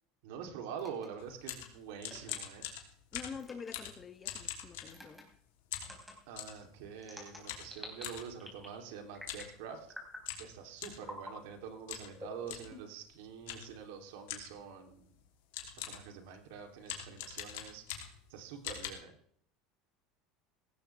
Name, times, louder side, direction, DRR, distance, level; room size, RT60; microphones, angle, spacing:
voice 1, 0.2-2.7 6.3-9.9 10.4-15.1 15.6-17.8 18.3-19.1, right 7 dB, 80° right, 3.2 m, -46 dB
sound 1, 0.8-1.1 2.0-2.3 3.4-3.7 4.9-5.2 5.8-6.1 7.0-8.0 8.4-8.8 9.1-9.5 9.9-10.3 11.0-11.3 12.1-13.0, left 1 dB, ahead, 4.2 m, -48 dB
sound 2, 1.2-5.3 5.7-6.6 7.5-8.3 9.2-9.5 9.8-9.9 10.2-11.1 11.9-12.1 12.5-12.7 13.5-13.8 14.3-14.6 15.2-15.3 15.5-16.1 16.8-18.3 18.6-18.9, left 11 dB, 85° left, 3.1 m, -43 dB
voice 2, 3.1-5.3, left 6 dB, 25° left, 1.0 m, -46 dB
17.5 x 15.0 x 3.5 m
supercardioid pair, 140°, 0 cm